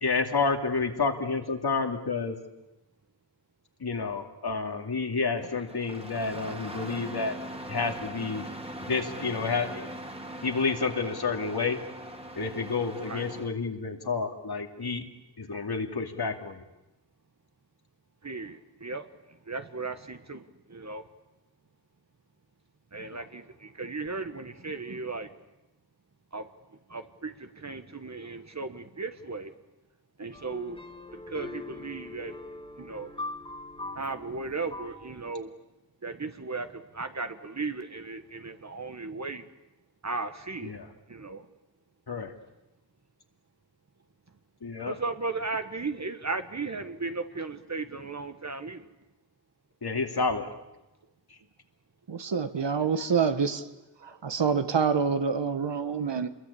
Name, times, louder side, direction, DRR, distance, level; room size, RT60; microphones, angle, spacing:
voice 1, 0.0-2.3 3.8-7.4 7.7-8.4 8.9-9.9 10.4-11.8 12.4-15.1 15.4-16.6 23.1-23.2 40.6-40.9 42.1-42.3 44.6-45.0 49.8-50.5, left 4 dB, 60° left, 4 dB, 2.7 m, -29 dB
Engine starting, 5.4-13.5, right 1 dB, 15° right, 2.5 m, -41 dB
voice 2, 18.2-21.1 22.9-25.4 26.3-26.5 26.9-29.6 30.2-30.8 31.1-32.4 32.8-33.1 33.9-35.5 36.0-39.5 40.0-40.8 41.1-41.5 44.8-48.9, right 3 dB, 40° right, 8 dB, 1.3 m, -36 dB
sound 1, 30.3-35.3, left 2 dB, 10° left, 3.0 m, -42 dB
voice 3, 52.1-53.7 54.0-56.3, right 6 dB, 75° right, 10 dB, 1.6 m, -27 dB
28.5 x 22.0 x 8.5 m, 0.99 s
wide cardioid pair, 95°, 43 cm